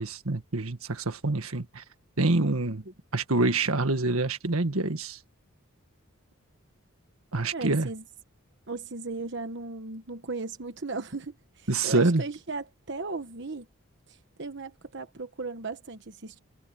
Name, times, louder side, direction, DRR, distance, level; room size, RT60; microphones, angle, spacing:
voice 1, 0.0-1.8 2.2-2.8 3.1-5.2 7.3-7.9 11.7-12.2, right 2 dB, 85° right, 1.7 m, -26 dB
voice 2, 7.5-8.0 8.7-13.7 14.1-16.4, right 3 dB, 55° right, 1.1 m, -37 dB
head